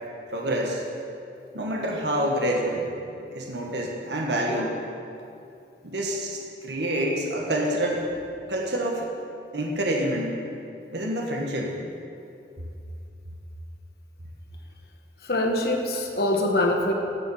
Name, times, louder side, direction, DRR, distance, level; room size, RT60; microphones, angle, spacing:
voice 1, 0.3-0.8 1.5-2.9 3.3-4.7 5.8-8.1 8.5-9.1 9.5-10.4 10.9-11.7, right 1 dB, 80° right, -1 dB, 1.4 m, -27 dB
voice 2, 15.2-16.9, left 1 dB, 60° left, 2 dB, 1.3 m, -24 dB
16.0 x 7.1 x 5.6 m, 2.6 s
head